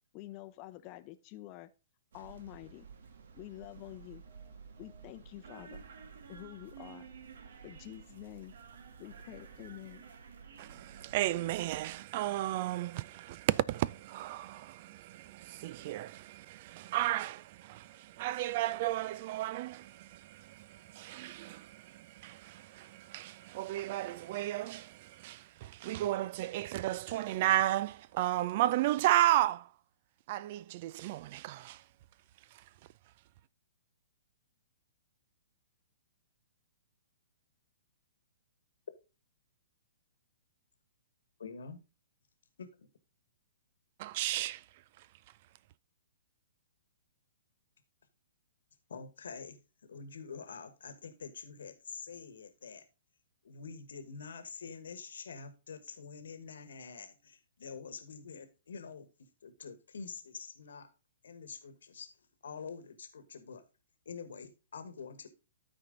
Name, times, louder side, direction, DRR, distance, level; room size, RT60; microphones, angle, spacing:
voice 1, 0.1-1.7 2.1-2.9 3.3-4.2 4.8-5.8 6.3-7.1 7.6-8.5 9.0-10.0, left 16 dB, 35° left, 0.7 m, -48 dB
sound 1, 2.1-11.9, right 6 dB, 65° right, 1.1 m, -52 dB
voice 2, 10.6-29.7 30.3-31.8 44.0-44.6, right 14 dB, 45° right, 0.4 m, -33 dB
voice 3, 41.4-41.8 42.6-42.9 48.9-52.8 53.4-59.1 59.4-60.9 61.2-62.1 62.4-63.6 64.0-65.3, left 5 dB, 75° left, 1.3 m, -46 dB
12.5 x 4.5 x 3.8 m
hypercardioid pair, 125°, 0 cm